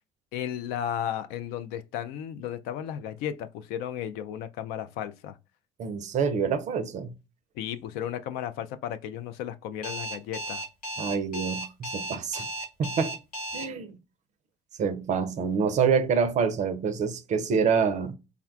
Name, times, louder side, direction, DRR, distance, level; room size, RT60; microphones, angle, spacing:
voice 1, 0.3-5.4 7.6-10.6, left 10 dB, 55° left, 0.4 m, -34 dB
voice 2, 5.8-7.1 11.0-12.5 12.8-13.2 13.5-14.0 14.8-18.1, right 6 dB, 40° right, 0.5 m, -26 dB
Alarm, 9.8-13.6, right 1 dB, 85° left, 1.1 m, -34 dB
3.4 x 2.2 x 2.3 m
figure-of-eight pair, 60°, 19 cm